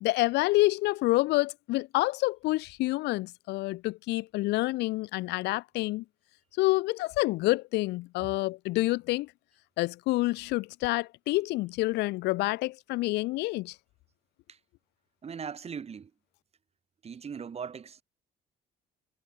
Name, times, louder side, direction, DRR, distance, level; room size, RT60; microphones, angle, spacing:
voice 1, 0.0-6.0 6.6-9.3 9.8-13.7, left 20 dB, 85° left, 1.6 m, -28 dB
voice 2, 15.2-16.1 17.0-18.0, right 6 dB, 40° right, 6.9 m, -39 dB
cardioid pair, 110°, 17 cm